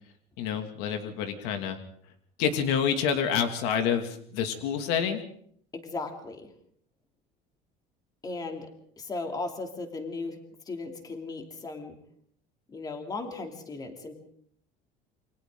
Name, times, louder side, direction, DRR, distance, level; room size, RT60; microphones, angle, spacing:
voice 1, 0.4-1.8 2.4-5.2, left 7 dB, 80° left, 6 dB, 2.6 m, -28 dB
voice 2, 5.7-6.5 8.2-8.7 9.0-10.4 10.7-12.0 12.7-14.1, left 3 dB, 20° left, 4 dB, 3.0 m, -36 dB
28.0 x 24.0 x 3.9 m, 0.63 s
cardioid pair, 150°, 17 cm